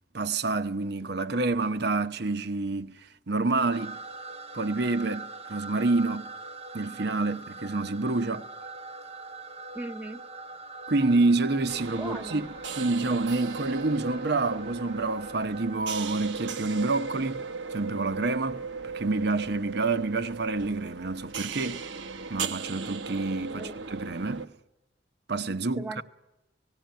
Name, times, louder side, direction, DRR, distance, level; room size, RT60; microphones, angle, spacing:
voice 1, 0.1-3.0 3.3-4.0 4.5-6.3 6.7-8.5 10.9-12.5 12.8-17.4 17.7-18.6 18.9-21.8 22.3-24.5 25.3-26.0, right 3 dB, 65° right, 1.0 m, -28 dB
sound 1, 3.7-15.8, right 3 dB, 35° right, 1.0 m, -42 dB
voice 2, 9.7-10.2 11.9-12.5 23.5-23.8 25.8-26.0, right 2 dB, 10° right, 1.2 m, -38 dB
sound 2, 11.7-24.5, right 5 dB, 90° right, 1.1 m, -38 dB
18.5 x 17.0 x 9.1 m
head